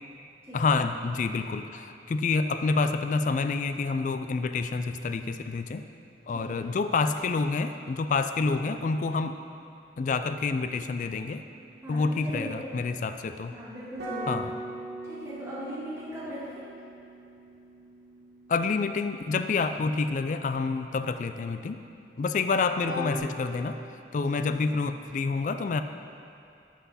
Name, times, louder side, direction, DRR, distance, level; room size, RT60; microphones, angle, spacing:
voice 1, 0.5-5.9 6.3-9.4 10.0-11.4 11.9-13.5 14.3-14.5 18.5-21.8 22.2-23.8 24.1-25.8, left 4 dB, 45° left, 9 dB, 0.3 m, -28 dB
voice 2, 6.3-6.7 11.8-12.8 13.5-14.4 15.0-16.7 24.2-24.6, equal, 15° right, -9 dB, 1.6 m, -39 dB
sound 1, 10.6-12.4 14.0-21.1 22.9-23.2, right 1 dB, 85° right, 2.1 m, -42 dB
11.0 x 5.8 x 4.1 m, 2.7 s
head